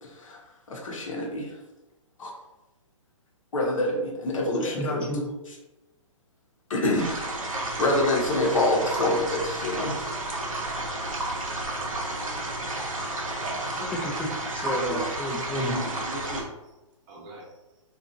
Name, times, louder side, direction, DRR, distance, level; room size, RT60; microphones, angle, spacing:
voice 1, 0.0-0.4 0.7-1.6 2.2-2.3 3.5-5.1 6.7-7.1 7.5-10.0, left 1 dB, 75° left, 0 dB, 0.8 m, -26 dB
voice 2, 4.8-5.2 14.0-15.8, left 1 dB, 10° left, -1 dB, 0.3 m, -31 dB
sound 1, 7.0-16.4, right 2 dB, 90° right, 0.7 m, -31 dB
voice 3, 13.4-13.8 14.8-15.1 15.4-16.5 17.1-17.5, right 2 dB, 35° right, -2 dB, 0.7 m, -36 dB
2.7 x 2.4 x 2.5 m, 1.0 s
hypercardioid pair, 130°, 17 cm